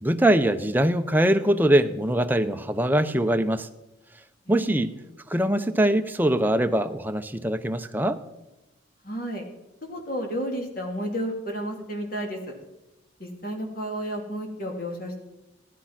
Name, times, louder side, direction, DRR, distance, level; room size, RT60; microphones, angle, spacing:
voice 1, 0.0-3.7 4.5-4.9 5.3-8.2, right 1 dB, 10° right, 7 dB, 0.7 m, -22 dB
voice 2, 4.5-4.8 9.0-9.5 9.8-12.4 13.2-15.2, equal, 45° left, 2 dB, 2.9 m, -32 dB
15.5 x 12.5 x 5.9 m, 0.96 s
head